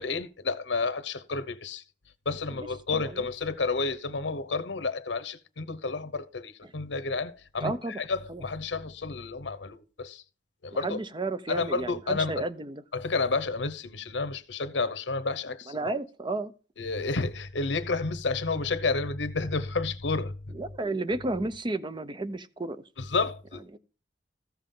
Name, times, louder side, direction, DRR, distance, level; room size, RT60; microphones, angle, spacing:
voice 1, 0.0-1.8 2.3-10.2 10.6-11.0 11.5-12.4 12.9-15.8 16.8-20.3 23.0-23.6, left 3 dB, 90° left, 0.9 m, -30 dB
voice 2, 2.9-3.2 6.6-6.7 7.6-8.0 8.3-8.4 10.8-12.8 15.7-16.5 20.5-22.8 23.7-23.8, right 2 dB, 25° right, 0.6 m, -32 dB
14.0 x 7.2 x 3.8 m
head